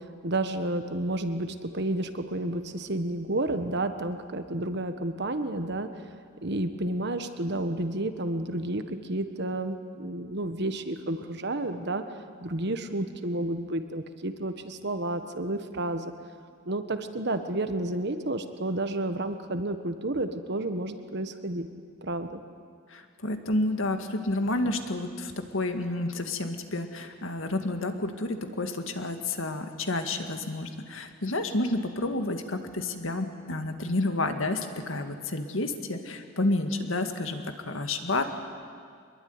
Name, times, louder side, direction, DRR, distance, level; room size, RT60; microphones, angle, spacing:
voice 1, 0.0-5.9 6.4-12.0 12.4-16.1 16.6-21.7 22.0-22.4, right 1 dB, 50° right, 8 dB, 1.5 m, -31 dB
voice 2, 22.9-38.2, left 2 dB, 65° left, 6 dB, 2.1 m, -30 dB
25.0 x 22.0 x 9.7 m, 2.1 s
head